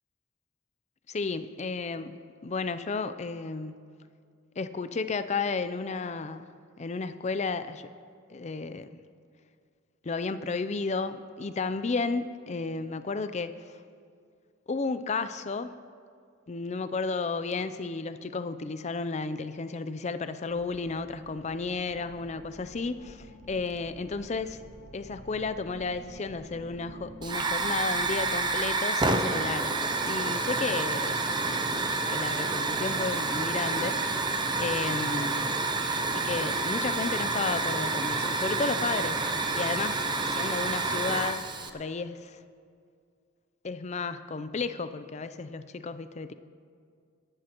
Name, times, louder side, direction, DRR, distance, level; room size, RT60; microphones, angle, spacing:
voice 1, 1.1-3.8 4.6-6.5 6.8-7.9 8.3-9.0 10.0-13.5 14.7-15.7 16.5-24.6 24.9-29.8 30.0-31.2 32.1-34.3 34.6-35.5 36.1-40.0 40.3-41.4 41.7-42.4 43.6-46.3, left 4 dB, 35° left, 12 dB, 0.5 m, -33 dB
sound 1, 20.5-28.7, right 1 dB, 10° left, 3.6 m, -49 dB
Hiss / Fire, 27.2-41.7, right 3 dB, 20° right, 0.6 m, -29 dB
23.5 x 11.5 x 3.0 m, 2.2 s
head